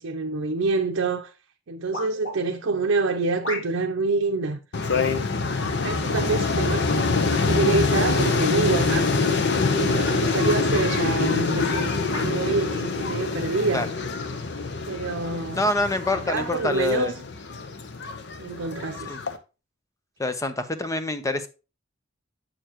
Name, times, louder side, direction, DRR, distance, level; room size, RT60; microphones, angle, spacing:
voice 1, 0.0-1.3 1.7-4.6 5.7-9.1 9.8-13.9 14.9-15.7 16.1-17.1 18.4-19.2, right 3 dB, 85° right, 0.6 m, -27 dB
sound 1, 0.9-1.0 1.9-2.4 3.4-3.9 4.8-5.0 6.0-6.4 7.2-7.4 9.3-9.5 10.1-10.2 11.1-11.2 12.1-12.4 13.2-13.3, left 1 dB, 90° left, 2.8 m, -36 dB
sound 2, 4.7-19.4, left 4 dB, 60° left, 0.8 m, -25 dB
voice 2, 15.6-17.1 19.1-19.2 20.2-21.5, left 2 dB, 15° left, 0.6 m, -26 dB
7.6 x 6.7 x 2.9 m
head